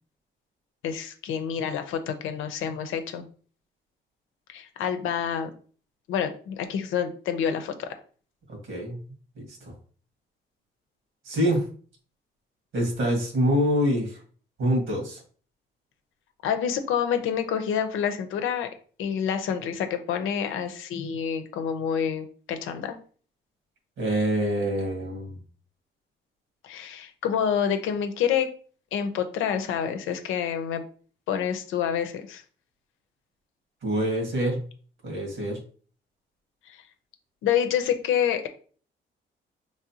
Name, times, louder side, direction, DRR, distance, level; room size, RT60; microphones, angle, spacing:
voice 1, 0.8-3.2 4.5-5.5 6.1-7.9 16.4-18.7 19.0-23.0 26.6-28.5 28.9-30.8 31.3-32.4 36.6-36.8 37.4-38.5, left 8 dB, 90° left, 7 dB, 0.7 m, -28 dB
voice 2, 8.5-9.0 9.7-9.8 11.2-11.6 12.7-14.2 14.6-15.2 24.0-25.4 33.8-34.6 35.0-35.6, equal, 75° right, 1 dB, 1.7 m, -25 dB
4.8 x 3.2 x 2.8 m, 0.43 s
cardioid pair, 90°, 20 cm